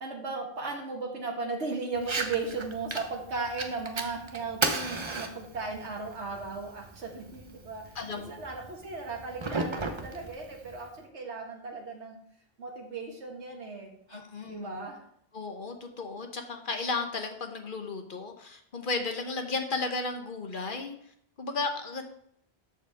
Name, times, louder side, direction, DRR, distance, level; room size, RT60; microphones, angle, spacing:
voice 1, 0.0-12.2 12.6-15.0, right 3 dB, 85° right, 2 dB, 1.8 m, -36 dB
Fire, 2.0-11.0, right 3 dB, 30° right, 0.7 m, -36 dB
voice 2, 7.9-8.3 14.1-14.7 15.3-20.9 21.4-22.0, left 3 dB, 50° left, 5 dB, 1.1 m, -34 dB
13.0 x 4.8 x 3.5 m, 0.69 s
omnidirectional pair, 1.1 m